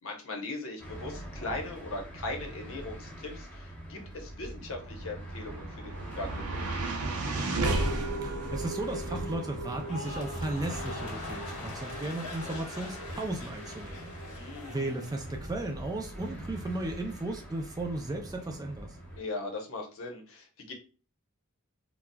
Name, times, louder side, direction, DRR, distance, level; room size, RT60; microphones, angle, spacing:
voice 1, 0.0-7.4 14.3-14.9 19.1-20.7, left 2 dB, 60° left, 0.9 m, -39 dB
sound 1, 0.8-19.2, right 1 dB, 5° left, 0.7 m, -43 dB
sound 2, 5.1-17.4, right 2 dB, 80° right, 0.6 m, -36 dB
voice 2, 8.2-14.1 14.4-19.0, right 2 dB, 15° right, 0.4 m, -35 dB
sound 3, 9.7-16.0 16.3-16.8, left 3 dB, 85° left, 1.0 m, -44 dB
4.0 x 2.2 x 2.2 m
head